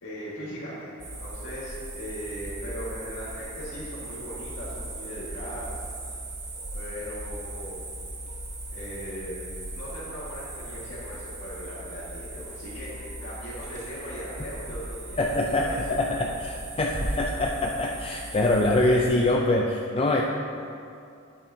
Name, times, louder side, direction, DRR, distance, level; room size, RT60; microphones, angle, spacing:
voice 1, 0.0-0.9 1.2-5.8 6.7-7.9 8.7-9.5 9.8-15.2 15.6-15.8, equal, 65° left, -12 dB, 1.9 m, -38 dB
sound 1, 1.0-19.4, right 1 dB, 35° right, 1.2 m, -38 dB
voice 2, 15.2-20.2, left 2 dB, 25° left, -1 dB, 0.4 m, -24 dB
9.4 x 8.6 x 2.8 m, 2.5 s
head